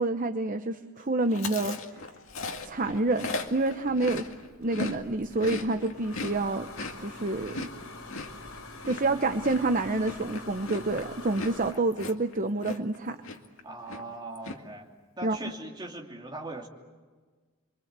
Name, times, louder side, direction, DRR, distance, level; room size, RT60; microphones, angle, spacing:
voice 1, 0.0-1.8 2.6-4.3 4.6-6.7 7.0-7.7 8.9-13.2 15.2-15.4, right 2 dB, 35° right, 7 dB, 0.9 m, -28 dB
Chewing mastication, 1.3-5.0 5.2-13.0 13.2-13.6 13.8-14.6, left 3 dB, 65° left, 2.1 m, -38 dB
sound 1, 2.3-11.7, left 2 dB, 85° left, 5.1 m, -46 dB
voice 2, 13.6-14.9 15.2-16.7, right 2 dB, 20° right, 0 dB, 3.0 m, -40 dB
29.0 x 24.0 x 8.2 m, 1.4 s
head